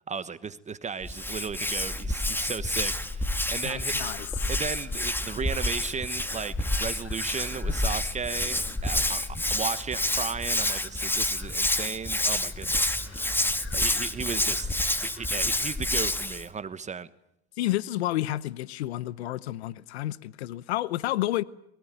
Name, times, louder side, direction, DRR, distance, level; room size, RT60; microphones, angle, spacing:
voice 1, 0.0-3.9 4.5-9.2 9.5-14.8 15.1-17.1, right 6 dB, 20° right, 1.2 m, -35 dB
Hands, 1.0-16.5, left 1 dB, 5° left, 1.9 m, -28 dB
voice 2, 3.6-4.5 17.6-21.4, left 15 dB, 85° left, 0.9 m, -30 dB
sound 1, 3.8-16.0, left 7 dB, 45° left, 5.8 m, -53 dB
23.5 x 22.5 x 9.3 m
supercardioid pair, 100°, 32 cm